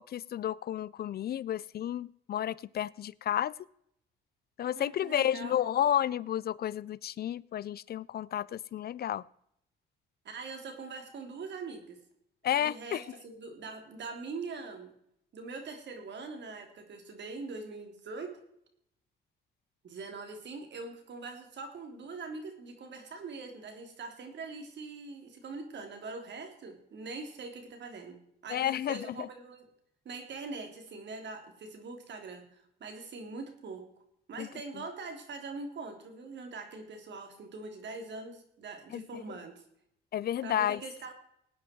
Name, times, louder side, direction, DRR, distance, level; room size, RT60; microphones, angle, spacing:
voice 1, 0.0-3.5 4.6-9.2 12.4-13.0 28.5-29.0 34.4-34.5 38.9-39.2 40.1-40.8, left 11 dB, 55° left, 0.4 m, -31 dB
voice 2, 4.8-5.6 10.3-12.0 12.5-14.9 15.3-18.3 19.8-28.2 28.4-29.7 30.1-33.9 34.3-39.6 40.4-41.1, right 4 dB, 65° right, 3.6 m, -43 dB
19.0 x 9.7 x 4.6 m
cardioid pair, 90°, 20 cm